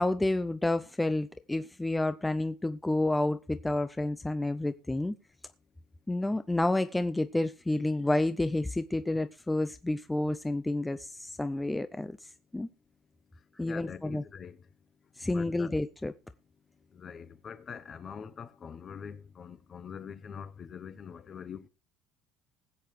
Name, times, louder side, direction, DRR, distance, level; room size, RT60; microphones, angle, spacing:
voice 1, 0.0-5.1 6.1-12.2 12.5-12.7 13.6-14.2 15.2-16.1, left 2 dB, 10° left, 0.5 m, -30 dB
voice 2, 13.6-14.6 15.3-15.7 16.9-21.7, left 7 dB, 35° left, 0.9 m, -44 dB
20.5 x 7.5 x 3.2 m
supercardioid pair, 110°, 0 cm